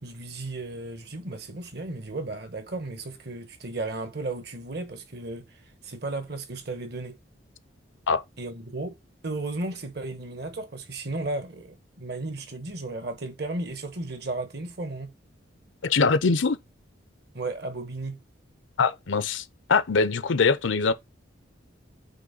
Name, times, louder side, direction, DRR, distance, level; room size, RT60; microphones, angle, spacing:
voice 1, 0.0-5.4 5.8-7.2 8.4-9.0 9.2-15.1 17.3-18.2, right 2 dB, 55° right, 1.1 m, -34 dB
voice 2, 15.8-16.6 18.8-20.9, left 4 dB, 80° left, 0.6 m, -23 dB
7.9 x 3.1 x 3.9 m
head